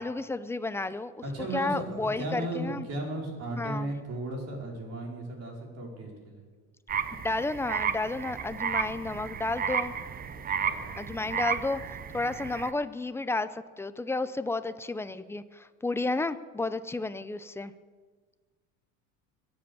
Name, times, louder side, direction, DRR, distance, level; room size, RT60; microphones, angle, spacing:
voice 1, 0.0-1.2 1.5-2.9 3.6-3.9 7.1-9.9 11.0-11.8 12.1-17.7, left 2 dB, 5° left, 13 dB, 0.5 m, -32 dB
voice 2, 1.2-6.4 10.3-10.9, right 1 dB, 45° right, 0 dB, 4.6 m, -36 dB
sound 1, 6.9-12.7, right 7 dB, 25° right, 0.7 m, -33 dB
22.5 x 7.9 x 7.0 m, 1.5 s
supercardioid pair, 130°, 37 cm